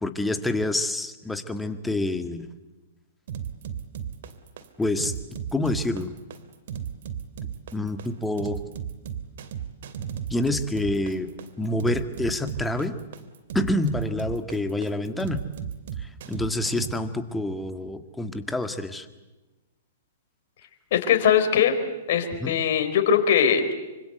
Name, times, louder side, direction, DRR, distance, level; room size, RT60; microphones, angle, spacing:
voice 1, 0.0-2.5 4.8-5.1 5.5-6.1 7.7-8.6 10.3-11.3 11.6-13.0 13.5-15.4 16.0-19.1 22.4-22.5, left 2 dB, 5° left, 8 dB, 1.9 m, -27 dB
sound 1, 3.3-16.9, right 8 dB, 60° right, 2.7 m, -35 dB
voice 2, 20.9-21.8 22.1-23.7, left 8 dB, 55° left, 6 dB, 4.1 m, -21 dB
26.0 x 25.5 x 8.1 m, 1.1 s
hypercardioid pair, 120°, 0 cm